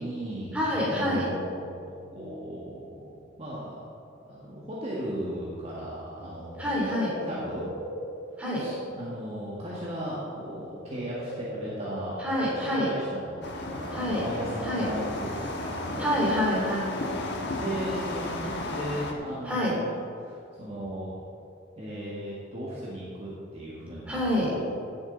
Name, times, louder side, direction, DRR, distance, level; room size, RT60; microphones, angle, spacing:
voice 1, 0.0-3.8 4.3-6.7 7.2-7.7 8.5-12.2 12.5-16.1 17.4-19.9 20.2-21.1 21.8-24.6, right 1 dB, 30° right, -7 dB, 1.6 m, -37 dB
voice 2, 0.5-1.3 6.6-7.2 8.4-8.7 12.2-12.9 13.9-14.2 14.6-14.9 16.0-16.9 19.4-19.8 24.1-24.5, equal, 5° right, -6 dB, 3.0 m, -27 dB
sound 1, 6.2-9.8 10.0-12.6 13.7-13.8, equal, 65° right, 2.3 m, -40 dB
sound 2, 13.4-19.1, left 2 dB, 60° left, 1.2 m, -34 dB
16.0 x 7.2 x 3.9 m, 2.4 s
head